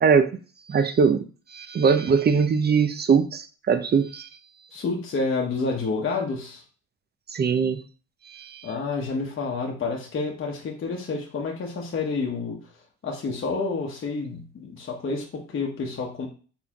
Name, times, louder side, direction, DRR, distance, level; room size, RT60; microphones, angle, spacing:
voice 1, 0.7-1.2 1.5-4.3 7.3-7.8 8.3-8.7, right 6 dB, 35° right, 11 dB, 0.6 m, -21 dB
voice 2, 4.7-6.6 8.6-12.6 13.0-16.3, left 4 dB, 40° left, -1 dB, 1.0 m, -29 dB
4.1 x 3.8 x 2.9 m, 0.37 s
cardioid pair, 90°, 30 cm